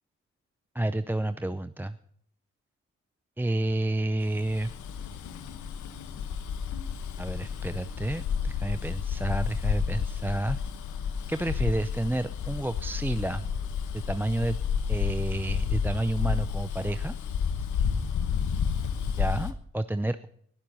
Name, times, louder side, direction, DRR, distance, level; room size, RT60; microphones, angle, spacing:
voice 1, 0.7-2.0 3.4-4.7 7.2-10.6 11.3-13.5 13.9-14.6 14.9-17.1 19.2-20.3, right 1 dB, 5° right, 11 dB, 0.6 m, -30 dB
Bus, 4.4-19.5, left 7 dB, 85° left, 1.2 m, -31 dB
19.5 x 7.5 x 5.5 m, 0.65 s
supercardioid pair, 50°, 30 cm